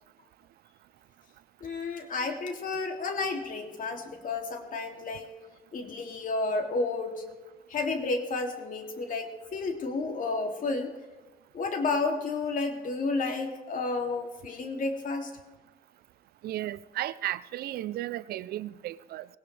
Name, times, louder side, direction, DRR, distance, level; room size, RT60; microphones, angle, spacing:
voice 1, 1.6-5.3 5.7-7.2 7.7-10.9 11.5-15.3, left 3 dB, 60° left, 2.7 m, -31 dB
voice 2, 16.4-19.3, right 14 dB, 80° right, 0.5 m, -34 dB
19.0 x 17.5 x 3.3 m
cardioid pair, 85°, 16 cm